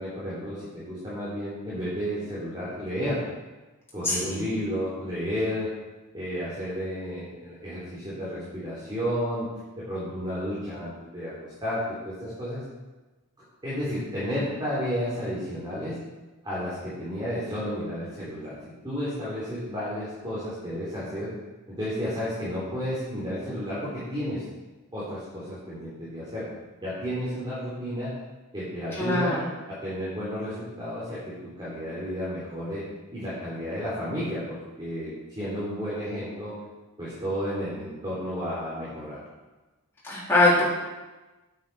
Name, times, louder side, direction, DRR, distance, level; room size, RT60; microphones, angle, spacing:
voice 1, 0.0-3.2 3.9-5.7 6.1-9.5 9.8-11.3 11.6-12.6 13.6-16.0 16.4-18.5 18.8-21.3 21.7-24.4 24.9-26.4 26.8-28.1 28.5-29.3 29.7-32.8 33.1-36.5 37.0-39.2, equal, 20° right, -10 dB, 3.2 m, -32 dB
voice 2, 4.0-4.4 28.9-29.5 40.0-40.6, left 2 dB, 10° left, -9 dB, 3.9 m, -22 dB
9.2 x 8.4 x 4.7 m, 1.2 s
head